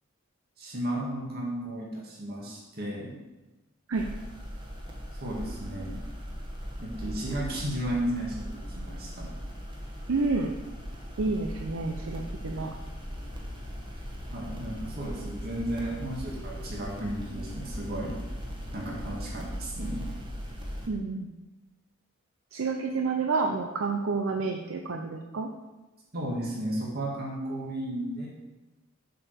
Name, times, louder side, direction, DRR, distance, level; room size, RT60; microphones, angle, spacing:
voice 1, 0.6-3.2 5.2-6.0 6.8-9.3 14.3-18.2 18.7-20.1 26.1-28.3, right 1 dB, 50° right, -4 dB, 1.9 m, -34 dB
sound 1, 3.9-20.9, equal, 25° right, 1.3 m, -39 dB
voice 2, 10.1-10.5 11.2-12.7 20.9-21.3 22.5-25.5, right 4 dB, 85° right, 3 dB, 0.6 m, -29 dB
7.6 x 4.8 x 6.5 m, 1.1 s
head